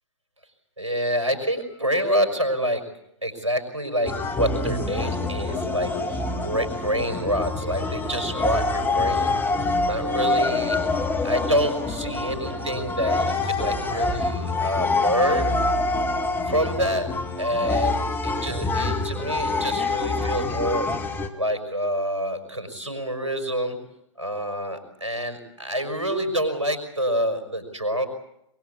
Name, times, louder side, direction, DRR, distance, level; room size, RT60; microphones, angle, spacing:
voice 1, 0.8-2.8 3.2-9.3 9.8-10.8 11.2-15.6 16.5-17.1 17.4-20.9 21.3-23.8 24.2-28.1, equal, 85° right, 7 dB, 5.7 m, -27 dB
sound 1, 4.0-21.3, left 3 dB, 15° left, 2.0 m, -26 dB
sound 2, 5.2-6.4 6.8-9.6 10.0-12.8 13.2-14.8, right 9 dB, 40° right, 1.7 m, -41 dB
23.0 x 22.5 x 8.4 m, 0.80 s
figure-of-eight pair, 115°, 15 cm